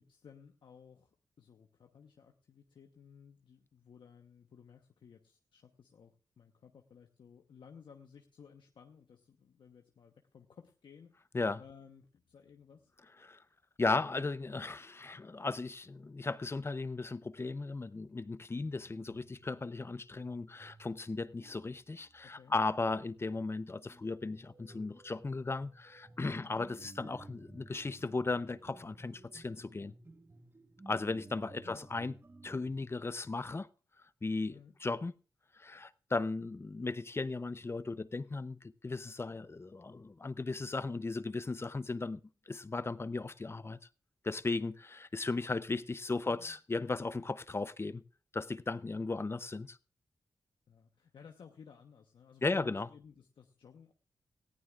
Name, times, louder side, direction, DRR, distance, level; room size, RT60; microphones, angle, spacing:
voice 1, 0.0-11.2 11.6-12.9 22.2-22.6 26.3-26.5 31.6-31.8 34.5-34.8 46.2-46.6 48.9-49.2 50.7-53.9, left 6 dB, 75° left, 1.0 m, -57 dB
voice 2, 13.8-29.9 30.9-32.1 32.4-33.7 34.2-35.1 35.6-42.2 42.5-43.8 44.2-48.0 48.3-49.8 52.4-52.9, left 3 dB, 30° left, 0.6 m, -36 dB
sound 1, 18.6-32.9, right 2 dB, 30° right, 1.2 m, -57 dB
19.0 x 14.5 x 2.4 m
cardioid pair, 60°, 8 cm